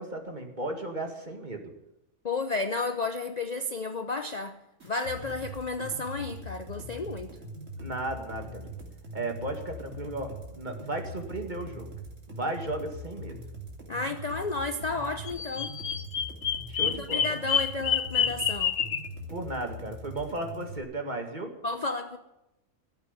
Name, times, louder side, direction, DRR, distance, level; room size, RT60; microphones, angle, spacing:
voice 1, 0.0-1.7 7.8-8.7 9.1-11.9 12.3-13.4 16.7-17.3 19.3-21.5, right 2 dB, 35° right, 4 dB, 2.1 m, -35 dB
voice 2, 2.2-4.6 4.8-7.4 13.9-15.7 16.8-18.8 21.6-22.2, left 3 dB, 40° left, 8 dB, 0.7 m, -32 dB
sound 1, 4.8-20.8, equal, 60° right, 3.3 m, -42 dB
Bird vocalization bird call bird song, 15.2-19.1, left 8 dB, 65° left, 1.1 m, -28 dB
18.0 x 8.2 x 9.6 m, 0.92 s
omnidirectional pair, 1.5 m